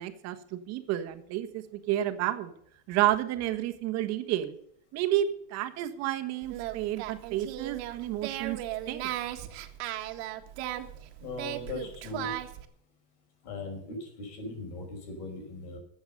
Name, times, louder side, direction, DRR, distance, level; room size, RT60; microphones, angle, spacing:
voice 1, 0.0-2.5 2.9-4.6 4.9-8.6 8.9-9.1, right 13 dB, 50° right, 8 dB, 1.5 m, -30 dB
Singing, 6.4-12.7, right 13 dB, 80° right, 1.6 m, -37 dB
voice 2, 11.2-12.3 13.4-15.8, left 2 dB, 85° left, 4 dB, 5.4 m, -39 dB
13.0 x 8.1 x 6.8 m, 0.70 s
cardioid pair, 155°, 32 cm